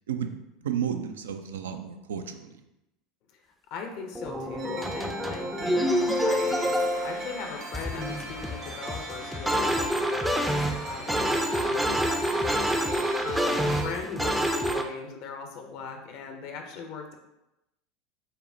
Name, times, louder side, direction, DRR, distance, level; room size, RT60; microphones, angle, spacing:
voice 1, 0.1-2.6 11.1-11.5, right 8 dB, 75° right, 7 dB, 0.3 m, -33 dB
voice 2, 3.7-12.0 13.2-17.2, left 5 dB, 60° left, 3 dB, 0.5 m, -39 dB
sound 1, 4.2-14.8, equal, 5° right, 0.4 m, -27 dB
sound 2, 4.6-14.0, right 2 dB, 40° right, 0.7 m, -41 dB
sound 3, 5.7-13.9, left 2 dB, 85° left, 0.9 m, -44 dB
5.3 x 2.1 x 2.6 m, 0.92 s
hypercardioid pair, 75°, 0 cm